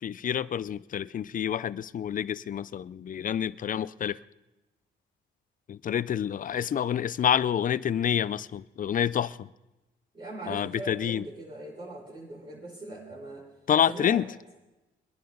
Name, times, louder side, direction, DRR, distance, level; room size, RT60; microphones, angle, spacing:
voice 1, 0.0-4.2 5.7-9.5 10.5-11.2 13.7-14.3, left 9 dB, 45° left, 0.5 m, -28 dB
voice 2, 10.1-13.5 13.9-14.2, right 2 dB, 30° right, 6.0 m, -40 dB
24.0 x 10.5 x 3.9 m
cardioid pair, 90°, 20 cm